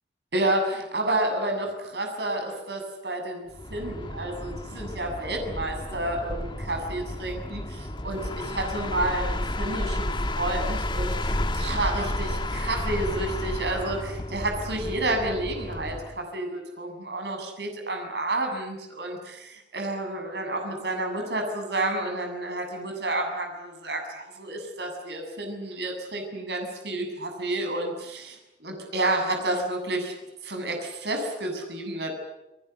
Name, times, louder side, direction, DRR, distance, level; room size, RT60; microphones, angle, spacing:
voice 1, 0.3-30.1 30.4-32.1, right 2 dB, 70° right, 3 dB, 7.5 m, -30 dB
sound 1, 3.5-16.2, left 1 dB, 25° left, 1.7 m, -31 dB
29.5 x 20.5 x 8.2 m, 0.95 s
head